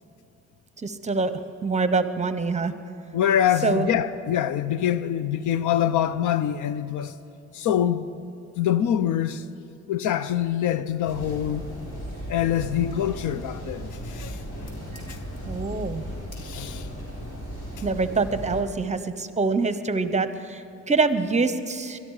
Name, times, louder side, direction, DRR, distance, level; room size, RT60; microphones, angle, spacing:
voice 1, 0.8-2.7 3.6-3.9 15.1-15.2 15.5-16.0 17.8-22.0, right 4 dB, 25° right, 0.9 m, -25 dB
voice 2, 3.1-7.1 7.5-8.1 8.6-9.4 9.9-11.6 12.3-14.4 16.4-16.9, left 10 dB, 80° left, 0.7 m, -25 dB
sound 1, 11.0-18.6, equal, 55° left, 4.4 m, -36 dB
22.5 x 12.5 x 4.9 m
cardioid pair, 90°, 30 cm